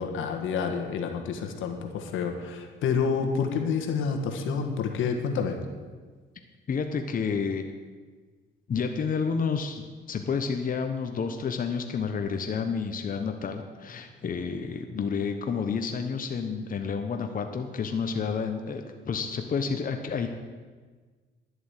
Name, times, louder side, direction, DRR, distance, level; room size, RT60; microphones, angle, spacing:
voice 1, 0.0-5.6, left 6 dB, 80° left, 4 dB, 1.6 m, -28 dB
voice 2, 6.7-7.6 8.7-20.3, left 5 dB, 45° left, 6 dB, 1.1 m, -30 dB
11.0 x 7.9 x 8.2 m, 1.5 s
cardioid pair, 90°, 20 cm